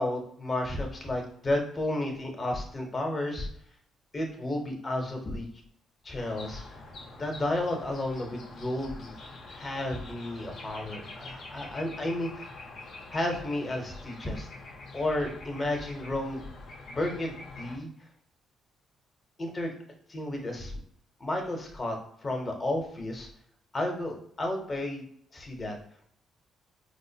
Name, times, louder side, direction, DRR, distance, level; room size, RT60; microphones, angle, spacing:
voice 1, 0.0-3.5 4.1-5.5 6.0-6.6 7.2-9.1 9.4-12.5 13.1-14.5 14.9-16.4 16.9-17.9 19.4-19.7 20.1-20.7 21.2-22.0 22.2-23.3 23.7-25.0 25.3-25.7, left 1 dB, 30° left, 2 dB, 0.9 m, -32 dB
sound 1, 6.2-17.8, left 2 dB, 65° left, 0.8 m, -45 dB
4.5 x 2.1 x 2.8 m, 0.65 s
cardioid pair, 90°, 0 cm